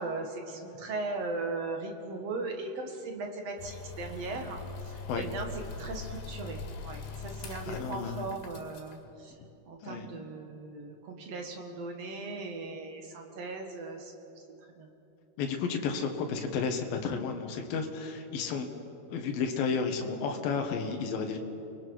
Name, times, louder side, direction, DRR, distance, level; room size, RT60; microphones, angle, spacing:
voice 1, 0.0-5.5 5.8-9.3 9.6-14.1 14.8-14.9, right 3 dB, 50° right, 3 dB, 2.1 m, -38 dB
sound 1, 3.6-9.0, left 4 dB, 85° left, 4.1 m, -42 dB
voice 2, 7.7-8.3 9.8-10.1 15.4-18.7 19.1-21.4, left 5 dB, 65° left, 3 dB, 3.1 m, -32 dB
30.0 x 21.5 x 4.7 m, 2.9 s
omnidirectional pair, 4.8 m